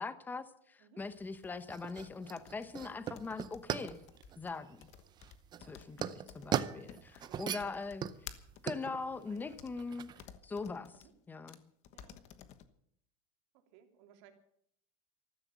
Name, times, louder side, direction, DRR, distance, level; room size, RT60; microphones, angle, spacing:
voice 1, 0.0-4.0 4.4-4.9 5.7-8.1 8.6-10.1 10.4-10.9 11.3-11.6, left 4 dB, 10° left, 14 dB, 0.8 m, -41 dB
sound 1, 1.0-10.2, right 9 dB, 25° right, 0.6 m, -40 dB
sound 2, 1.4-8.6 9.4-9.7 10.2-11.1 11.5-11.6 11.8-12.7, left 10 dB, 40° left, 1.2 m, -53 dB
voice 2, 6.8-7.8 9.0-9.7 10.9-11.1 11.9-12.3 13.5-14.3, right 10 dB, 60° right, 4 dB, 3.1 m, -62 dB
14.0 x 13.5 x 7.0 m, 0.69 s
supercardioid pair, 160°, 18 cm